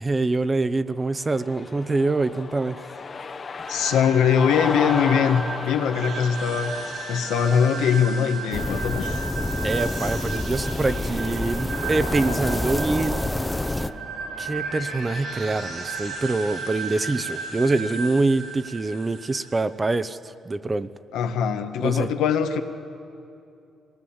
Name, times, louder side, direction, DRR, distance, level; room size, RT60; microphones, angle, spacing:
voice 1, 0.0-2.9 9.6-13.3 13.7-13.9 14.4-20.9 21.8-22.1, right 3 dB, 25° right, 13 dB, 0.7 m, -25 dB
Cheering, 1.1-10.4, left 4 dB, 40° left, 0.9 m, -35 dB
voice 2, 3.7-6.8 7.1-9.2 21.1-22.6, left 7 dB, 90° left, 6 dB, 1.2 m, -22 dB
sound 1, 3.7-19.6, right 4 dB, 65° right, 4.4 m, -34 dB
sound 2, 8.5-13.9, left 1 dB, 10° left, 0.7 m, -28 dB
24.5 x 18.5 x 7.2 m, 2.7 s
cardioid pair, 90°, 0 cm